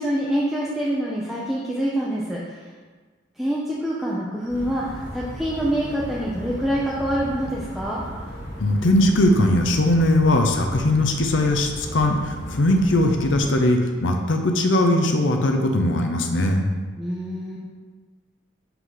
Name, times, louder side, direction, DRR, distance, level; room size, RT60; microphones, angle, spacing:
voice 1, 0.0-2.6 3.4-8.0 17.0-17.6, equal, ahead, -7 dB, 0.6 m, -26 dB
sound 1, 4.5-13.4, equal, 55° left, 1.5 m, -36 dB
voice 2, 8.6-16.7, left 1 dB, 75° left, 4 dB, 0.7 m, -20 dB
5.8 x 3.8 x 5.7 m, 1.4 s
head